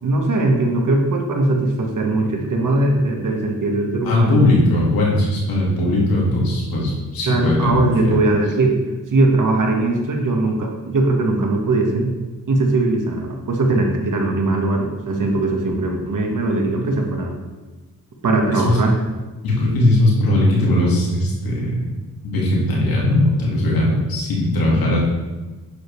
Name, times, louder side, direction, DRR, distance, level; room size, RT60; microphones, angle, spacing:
voice 1, 0.0-4.5 7.3-8.8 9.1-12.2 12.5-17.3 18.2-19.0, right 2 dB, 65° right, 2 dB, 1.7 m, -20 dB
voice 2, 4.0-8.2 18.6-18.8 19.4-21.8 22.2-25.0, left 1 dB, 85° left, -4 dB, 2.4 m, -18 dB
9.3 x 7.0 x 3.4 m, 1.2 s
cardioid pair, 55°, 34 cm